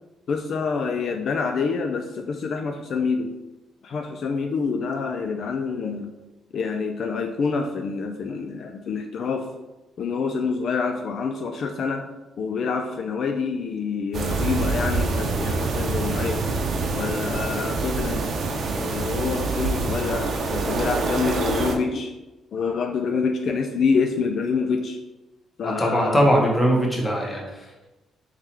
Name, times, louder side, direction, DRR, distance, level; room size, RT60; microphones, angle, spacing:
voice 1, 0.3-3.3 3.8-6.1 6.5-9.5 10.0-12.0 12.4-16.4 16.9-18.2 18.8-22.1 22.5-25.0 25.6-26.4, left 5 dB, 60° left, 4 dB, 0.4 m, -27 dB
sound 1, 14.1-21.8, right 3 dB, 60° right, 0.7 m, -26 dB
voice 2, 25.6-27.9, equal, 15° left, -2 dB, 1.2 m, -21 dB
3.7 x 3.1 x 4.3 m, 1.1 s
cardioid pair, 90°, 0 cm